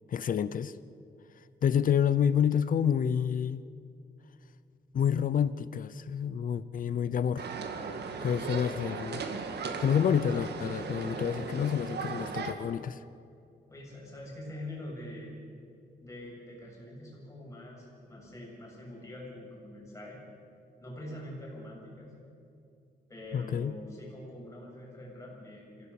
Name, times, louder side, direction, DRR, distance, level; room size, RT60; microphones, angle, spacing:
voice 1, 0.1-0.7 1.6-3.6 4.9-7.5 8.2-9.2 9.8-13.0 23.3-23.8, left 8 dB, 50° left, 0.6 m, -28 dB
sound 1, 7.4-12.5, right 5 dB, 75° right, 1.9 m, -37 dB
voice 2, 13.7-15.3 16.0-20.2 20.8-22.2 23.1-25.9, left 1 dB, 15° left, 7.3 m, -44 dB
26.0 x 16.5 x 7.1 m
wide cardioid pair, 170°, 18 cm